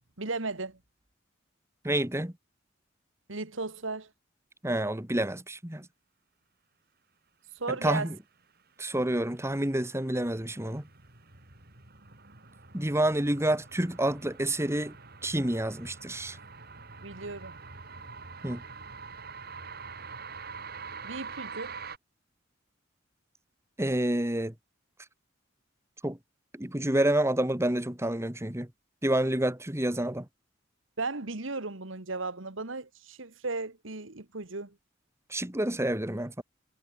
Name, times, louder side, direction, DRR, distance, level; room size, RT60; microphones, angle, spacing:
voice 1, 0.2-0.8 3.3-4.1 7.6-8.1 17.0-17.6 21.0-21.8 31.0-34.7, right 3 dB, 75° right, 2.0 m, -35 dB
voice 2, 1.8-2.3 4.6-5.9 7.7-8.2 8.8-10.9 12.7-15.0 15.2-16.4 18.4-18.6 23.8-24.5 26.0-26.2 26.5-28.7 29.0-30.3 35.3-36.4, right 1 dB, 15° right, 2.4 m, -28 dB
sound 1, 9.2-22.0, right 5 dB, 50° right, 5.7 m, -45 dB
head